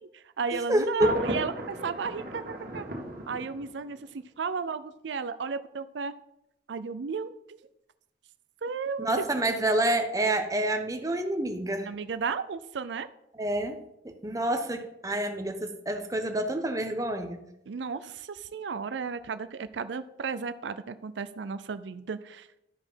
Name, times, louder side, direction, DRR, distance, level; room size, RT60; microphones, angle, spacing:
voice 1, 0.0-2.4 2.7-2.8 3.3-6.1 6.7-7.6 8.6-9.1 11.9-13.1 17.7-22.5, right 5 dB, 90° right, 12 dB, 0.5 m, -34 dB
voice 2, 0.7-1.1 9.0-11.9 13.4-17.4, right 1 dB, 20° right, 5 dB, 1.0 m, -28 dB
Thunder, 1.0-4.0, right 1 dB, 55° right, 1.7 m, -36 dB
12.5 x 5.0 x 5.7 m, 0.84 s
head